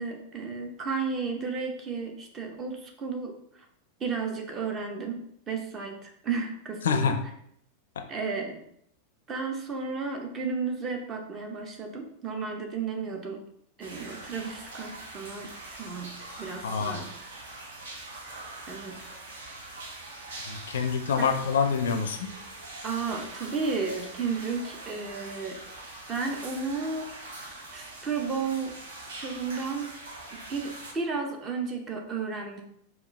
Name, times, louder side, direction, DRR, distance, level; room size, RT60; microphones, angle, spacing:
voice 1, 0.0-3.3 4.0-5.2 5.5-7.2 8.1-8.6 9.3-13.4 13.8-16.1 16.4-17.1 18.7-19.0 21.2-21.3 22.8-25.6 26.1-28.8 29.1-29.9 30.5-32.6, right 4 dB, 25° right, 3 dB, 0.7 m, -33 dB
voice 2, 6.8-7.2 16.6-17.0 20.5-22.3, left 6 dB, 65° left, 6 dB, 0.4 m, -26 dB
sound 1, 13.8-30.9, right 2 dB, 60° right, 0.8 m, -43 dB
4.4 x 2.3 x 3.1 m, 0.70 s
figure-of-eight pair, 90°, 0 cm